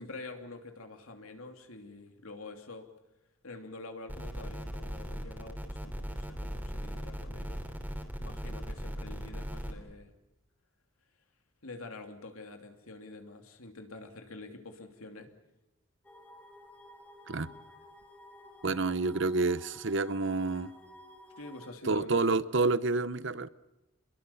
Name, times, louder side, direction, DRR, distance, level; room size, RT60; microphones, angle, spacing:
voice 1, 0.0-2.9 3.4-7.6 8.2-10.1 11.6-15.3 21.4-22.4, left 2 dB, 80° left, 2.8 m, -46 dB
sound 1, 4.1-9.7, equal, 10° right, 3.0 m, -38 dB
sound 2, 16.0-21.7, equal, 5° left, 1.9 m, -53 dB
voice 2, 18.6-20.7 21.9-23.5, right 3 dB, 55° right, 0.8 m, -28 dB
28.0 x 22.0 x 7.0 m
head